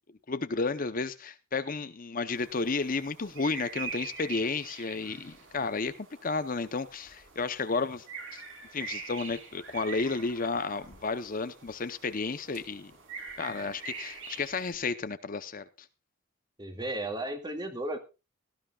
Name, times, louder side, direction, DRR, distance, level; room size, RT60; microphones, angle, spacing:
voice 1, 0.3-5.9 6.2-8.1 8.3-8.4 8.7-12.9 13.4-15.6, left 4 dB, 40° left, 11 dB, 0.7 m, -32 dB
sound 1, 2.3-14.7, right 5 dB, 60° right, 3.6 m, -44 dB
voice 2, 16.6-18.0, right 1 dB, 20° right, 5 dB, 2.1 m, -34 dB
18.0 x 14.0 x 2.3 m, 0.30 s
head